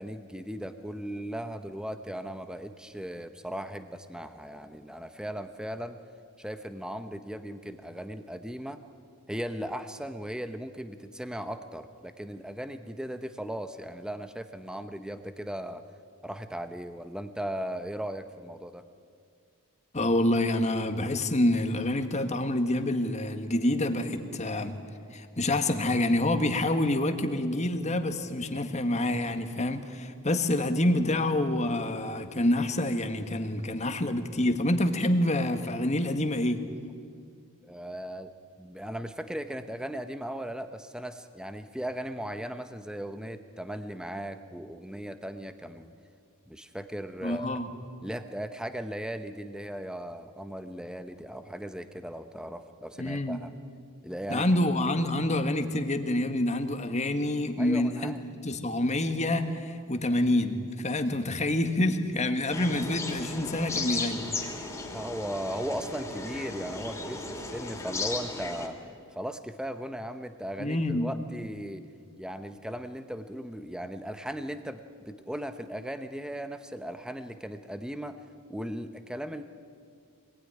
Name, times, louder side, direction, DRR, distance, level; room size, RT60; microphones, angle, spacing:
voice 1, 0.0-6.0 6.4-8.8 9.3-15.8 16.2-18.8 37.6-38.3 38.6-45.9 46.5-47.6 48.0-53.5 54.0-54.6 57.6-58.2 64.9-68.8 69.2-71.8 72.2-78.2 78.5-79.4, equal, 5° right, 9 dB, 0.9 m, -37 dB
voice 2, 19.9-24.7 25.1-36.6 47.2-47.7 53.0-53.4 54.3-58.1 58.4-64.7 70.6-71.1, left 1 dB, 30° left, 7 dB, 1.6 m, -27 dB
sound 1, 62.5-68.7, left 3 dB, 10° left, 3.0 m, -35 dB
25.5 x 19.5 x 10.0 m, 2.2 s
head